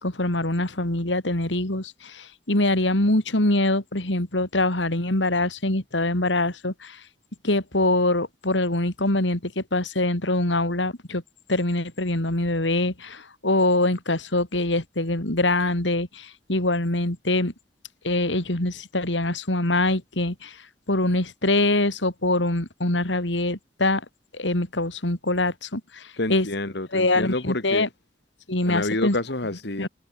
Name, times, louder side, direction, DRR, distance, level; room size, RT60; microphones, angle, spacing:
voice 1, 0.0-7.0 7.4-11.2 11.5-17.5 18.0-20.6 20.9-24.0 24.3-26.5 26.9-27.9 28.5-29.2 29.8-29.9, left 2 dB, 80° left, 3.6 m, -24 dB
voice 2, 26.2-27.9 28.6-29.9, left 2 dB, 65° left, 2.5 m, -28 dB
head